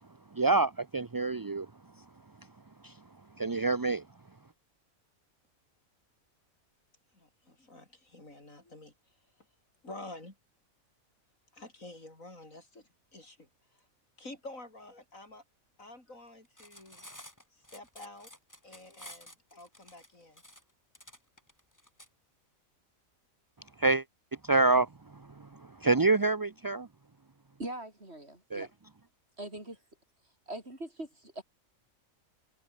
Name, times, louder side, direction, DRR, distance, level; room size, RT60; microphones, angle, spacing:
voice 1, 0.3-1.7 2.8-2.9 3.4-4.0 23.8-24.0 24.4-24.9 25.4-26.9 28.5-28.7, right 3 dB, 25° right, 0.4 m, -27 dB
voice 2, 7.2-8.9 9.8-10.3 11.5-12.8 13.1-13.5 14.2-15.4 15.8-17.0 17.7-18.3 18.6-20.4, left 2 dB, 70° left, 6.7 m, -49 dB
Cutlery silverware, 16.4-22.1, left 1 dB, 10° left, 5.4 m, -52 dB
voice 3, 27.6-28.7 29.4-29.8 30.5-31.4, right 1 dB, 50° right, 7.2 m, -41 dB
omnidirectional pair, 1.4 m